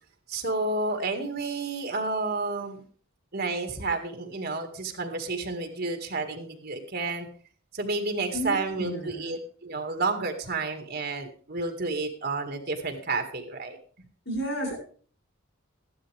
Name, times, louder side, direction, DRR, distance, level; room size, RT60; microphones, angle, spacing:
voice 1, 0.3-2.8 3.3-7.3 7.7-13.8, right 3 dB, 50° right, 6 dB, 2.1 m, -30 dB
voice 2, 8.3-9.4 14.3-14.8, equal, 60° left, 1 dB, 7.2 m, -32 dB
14.5 x 11.5 x 3.5 m, 0.43 s
head